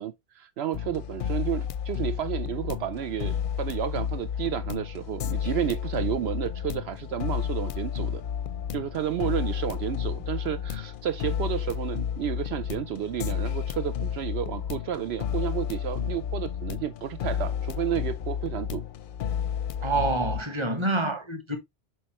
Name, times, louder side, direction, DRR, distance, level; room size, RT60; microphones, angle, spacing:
voice 1, 0.0-8.2 8.7-18.8, right 10 dB, 75° right, 0.8 m, -31 dB
sound 1, 0.7-20.4, left 9 dB, 60° left, 0.6 m, -31 dB
voice 2, 19.8-21.6, right 2 dB, 25° right, 1.3 m, -27 dB
7.9 x 4.4 x 3.0 m
omnidirectional pair, 1.1 m